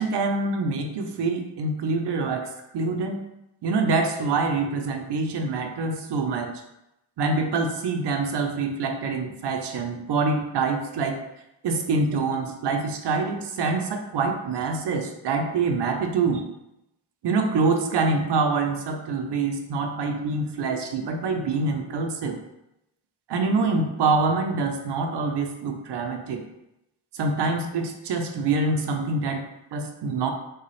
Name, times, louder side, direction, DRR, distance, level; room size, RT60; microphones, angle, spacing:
voice 1, 0.0-3.2 3.6-6.6 7.2-11.2 11.6-16.5 17.2-22.4 23.3-26.4 27.1-29.4 29.7-30.3, right 3 dB, 70° right, 5 dB, 0.6 m, -25 dB
3.9 x 2.3 x 3.1 m, 0.86 s
cardioid pair, 60°, 43 cm